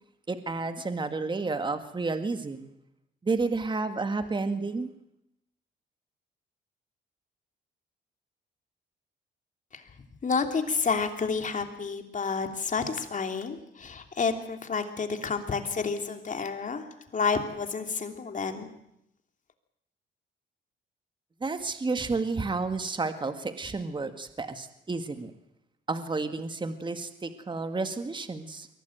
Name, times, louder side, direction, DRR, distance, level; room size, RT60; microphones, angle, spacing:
voice 1, 0.3-2.7 3.2-4.9 21.4-25.3 25.9-28.7, right 3 dB, 25° right, 9 dB, 1.8 m, -31 dB
voice 2, 10.2-16.8 17.1-18.7, left 5 dB, 40° left, 6 dB, 3.1 m, -30 dB
23.0 x 17.5 x 9.2 m, 0.81 s
cardioid pair, 90°, 20 cm